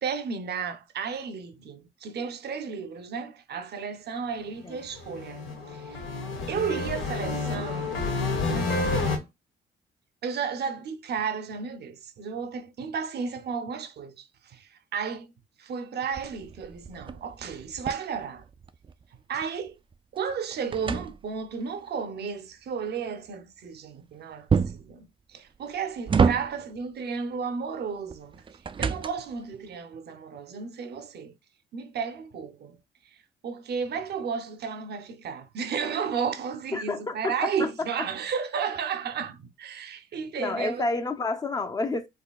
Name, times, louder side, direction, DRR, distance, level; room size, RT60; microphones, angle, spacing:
voice 1, 0.0-6.0 6.5-8.0 8.5-9.3 10.2-15.3 15.6-18.4 19.3-19.7 20.1-28.4 28.8-31.3 31.7-32.8 33.4-40.9, right 6 dB, 55° right, 0.7 m, -33 dB
sound 1, 4.8-9.2, left 3 dB, 75° left, 1.3 m, -29 dB
sound 2, 16.1-19.0 19.4-21.7 24.5-25.0 25.6-26.8 28.1-29.4, right 6 dB, 25° right, 0.3 m, -28 dB
voice 2, 36.7-38.1 40.4-42.1, left 3 dB, 20° left, 0.6 m, -30 dB
4.3 x 2.8 x 2.3 m
cardioid pair, 90°, 20 cm